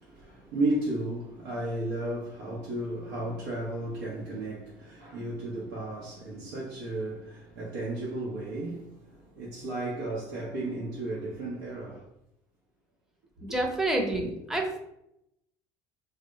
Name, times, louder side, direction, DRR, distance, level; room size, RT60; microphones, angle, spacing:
voice 1, 0.1-8.9 9.4-12.0, right 2 dB, 80° right, 0.7 m, -33 dB
voice 2, 13.4-14.8, right 1 dB, 5° right, 0.6 m, -28 dB
2.2 x 2.0 x 3.8 m
hypercardioid pair, 75°, 10 cm